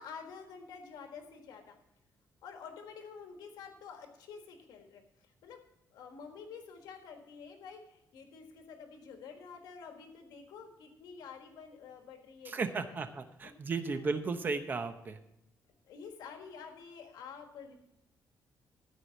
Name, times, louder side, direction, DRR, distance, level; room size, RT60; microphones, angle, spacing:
voice 1, 0.0-1.8 2.4-5.0 5.4-5.6 5.9-13.0 13.4-13.5 13.9-14.1 15.9-17.9, left 6 dB, 90° left, 4 dB, 1.6 m, -49 dB
voice 2, 12.5-15.2, right 4 dB, 30° right, 9 dB, 0.8 m, -35 dB
14.5 x 4.9 x 7.1 m, 0.83 s
cardioid pair, 160°, 7 cm